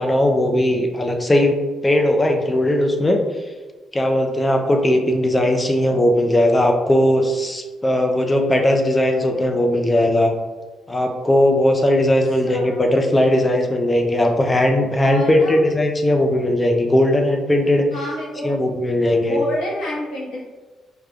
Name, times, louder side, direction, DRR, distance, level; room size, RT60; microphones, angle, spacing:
voice 1, 0.0-1.6 1.8-3.2 3.9-10.3 10.9-17.9 18.4-19.4, left 1 dB, 20° left, 3 dB, 0.5 m, -18 dB
voice 2, 12.4-12.8 14.4-14.5 15.0-15.7 17.9-18.6 19.3-20.4, equal, 80° left, -5 dB, 1.1 m, -28 dB
4.8 x 2.4 x 2.3 m, 1.3 s
cardioid pair, 90°, 0 cm